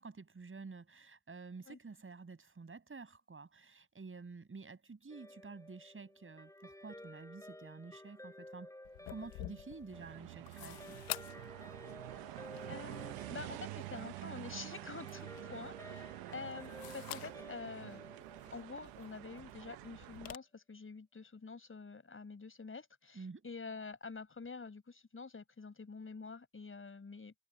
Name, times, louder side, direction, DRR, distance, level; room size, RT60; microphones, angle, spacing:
voice 1, 0.0-8.7 9.1-11.1 23.1-23.5, right 4 dB, 35° right, 7.5 m, -50 dB
Guitar, 5.1-19.7, left 1 dB, 10° left, 6.9 m, -54 dB
sound 1, 8.8-20.4, left 18 dB, 85° left, 1.1 m, -51 dB
sound 2, 9.9-20.3, right 19 dB, 90° right, 0.9 m, -48 dB
voice 2, 12.7-18.2 18.5-27.3, left 4 dB, 35° left, 5.5 m, -47 dB
supercardioid pair, 55°, 35 cm